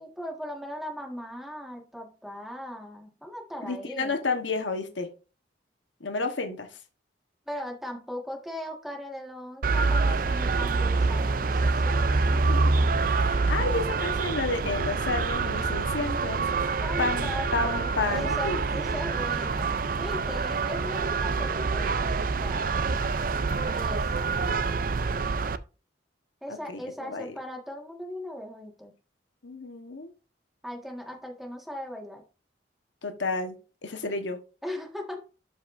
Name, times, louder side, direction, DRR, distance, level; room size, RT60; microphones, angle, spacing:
voice 1, 0.0-4.2 7.5-12.4 16.8-22.8 23.7-24.3 26.4-28.9 30.6-32.2 34.6-35.2, equal, ahead, 1.7 m, -38 dB
voice 2, 3.6-5.1 6.0-6.8 12.5-16.4 17.0-18.6 26.5-27.3 29.4-30.1 33.0-33.5 33.8-34.4, left 3 dB, 90° left, 1.3 m, -31 dB
sound 1, 9.6-25.6, right 4 dB, 50° right, 0.5 m, -26 dB
12.0 x 5.3 x 2.6 m
head